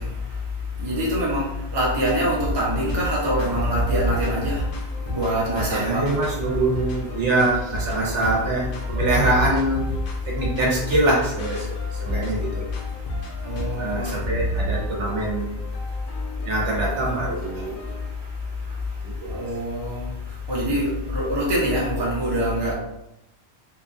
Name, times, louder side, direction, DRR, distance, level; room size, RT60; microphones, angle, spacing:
voice 1, 0.8-1.4 1.7-4.6 5.1-6.0 7.9-8.3 13.5-14.1 19.3-20.0 20.5-22.7, equal, 30° right, -4 dB, 0.6 m, -24 dB
sound 1, 2.1-18.1, right 1 dB, 60° left, 0.6 m, -32 dB
voice 2, 5.5-9.8 10.3-12.7 13.8-15.6 16.4-17.8 19.0-19.4, right 2 dB, 85° right, -3 dB, 1.1 m, -24 dB
2.8 x 2.2 x 2.4 m, 0.84 s
omnidirectional pair, 1.2 m